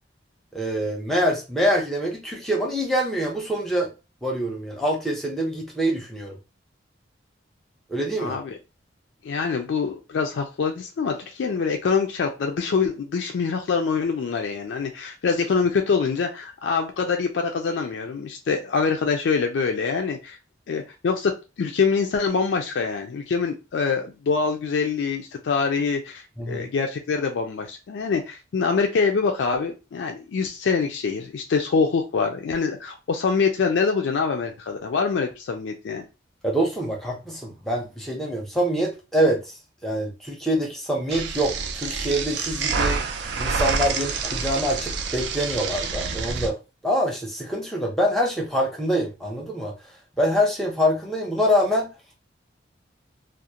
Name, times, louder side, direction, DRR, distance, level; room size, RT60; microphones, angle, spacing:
voice 1, 0.5-3.9 4.2-6.4 7.9-8.4 26.4-26.7 36.4-39.4 39.8-43.0 43.4-46.6 46.8-49.7 50.2-51.9, equal, ahead, 0.6 m, -25 dB
voice 2, 8.2-8.6 9.2-20.4 20.7-36.0, left 5 dB, 75° left, 0.3 m, -25 dB
sound 1, 41.1-46.5, right 5 dB, 65° right, 0.3 m, -27 dB
2.4 x 2.0 x 2.7 m
head